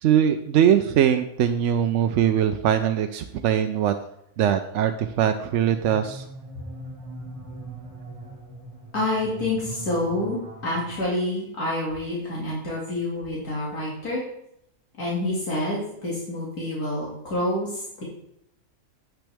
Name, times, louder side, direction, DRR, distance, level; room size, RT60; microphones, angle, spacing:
voice 1, 0.0-3.9 4.4-6.3, right 9 dB, 65° right, 7 dB, 0.8 m, -21 dB
sound 1, 5.6-11.0, right 2 dB, 20° right, 2.2 m, -40 dB
voice 2, 8.9-14.2 15.0-18.0, left 1 dB, 75° left, -6 dB, 2.8 m, -28 dB
9.1 x 7.9 x 3.4 m, 0.76 s
omnidirectional pair, 1.6 m